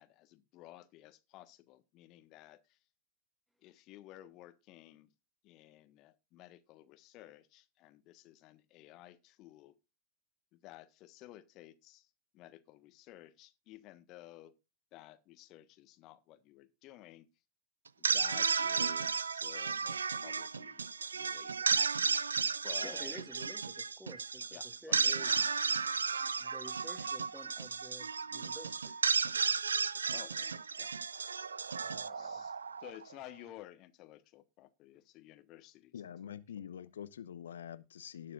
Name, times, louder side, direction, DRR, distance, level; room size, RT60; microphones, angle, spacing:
voice 1, 0.0-2.8 3.6-5.1 5.4-9.7 10.6-12.1 12.3-14.5 14.9-17.3 18.0-20.8 21.1-21.7 22.6-23.2 24.5-25.7 30.1-30.9 32.1-32.5 32.8-35.9, left 15 dB, 40° left, 1.3 m, -54 dB
sound 1, 17.9-33.1, right 5 dB, 80° right, 0.5 m, -34 dB
voice 2, 22.8-25.3 26.4-29.0 31.8-32.4, equal, 5° right, 2.2 m, -52 dB
voice 3, 35.9-38.3, left 9 dB, 70° left, 0.9 m, -46 dB
19.5 x 6.7 x 2.5 m
figure-of-eight pair, 90°, 0 cm